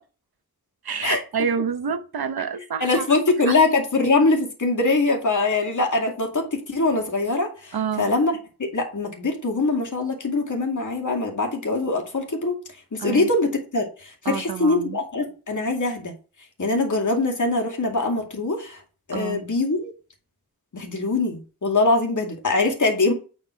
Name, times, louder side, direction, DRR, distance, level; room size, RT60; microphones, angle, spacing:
voice 1, 0.8-3.6 7.7-8.1 13.0-13.3 14.2-15.0 19.1-19.4, right 6 dB, 75° right, 1.0 m, -28 dB
voice 2, 2.8-8.3 8.7-12.6 12.9-16.1 16.6-18.8 19.1-19.9 20.7-23.1, left 3 dB, 55° left, 2.4 m, -23 dB
8.5 x 5.0 x 4.6 m
wide cardioid pair, 100°, 37 cm